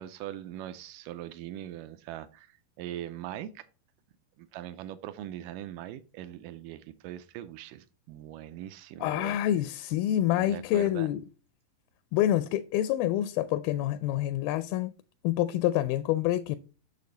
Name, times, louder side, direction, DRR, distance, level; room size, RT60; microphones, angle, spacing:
voice 1, 0.0-3.6 4.4-9.4 10.3-11.1, right 12 dB, 80° right, 2.0 m, -41 dB
voice 2, 9.0-11.2 12.1-14.9 15.2-16.6, left 13 dB, 85° left, 2.3 m, -27 dB
6.9 x 6.6 x 3.9 m
omnidirectional pair, 4.3 m